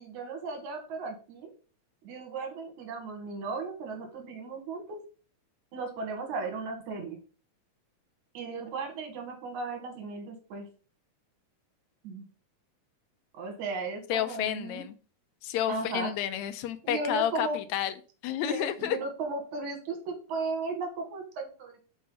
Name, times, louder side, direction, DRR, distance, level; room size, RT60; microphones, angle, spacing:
voice 1, 0.0-1.5 2.0-5.0 5.7-7.2 8.3-10.7 12.0-12.3 13.3-14.8 15.7-16.1 16.8-17.6 18.4-21.8, right 3 dB, 80° right, 2.9 m, -36 dB
voice 2, 14.1-14.9 15.4-17.9 18.2-19.0, left 11 dB, 85° left, 2.0 m, -30 dB
5.5 x 5.4 x 5.4 m
omnidirectional pair, 3.3 m